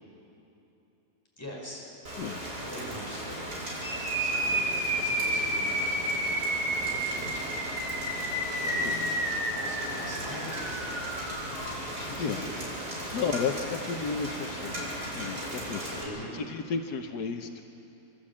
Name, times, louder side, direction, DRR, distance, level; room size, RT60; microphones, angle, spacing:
voice 1, 1.4-1.9 2.6-3.5 3.7-3.8 4.2-5.8 6.6-7.8 8.5-9.2 9.5-11.1 11.9-13.2 16.0-16.4, equal, 10° left, -4 dB, 5.3 m, -42 dB
Rain, 2.1-16.0, equal, 85° right, 5.7 m, -37 dB
voice 2, 2.2-2.5 8.8-9.1 11.9-12.4 13.1-16.0 16.3-17.6, left 5 dB, 80° left, 5 dB, 1.5 m, -33 dB
sound 1, 3.8-11.7, right 1 dB, 35° right, 3.6 m, -31 dB
28.5 x 13.0 x 8.6 m, 2.9 s
omnidirectional pair, 1.7 m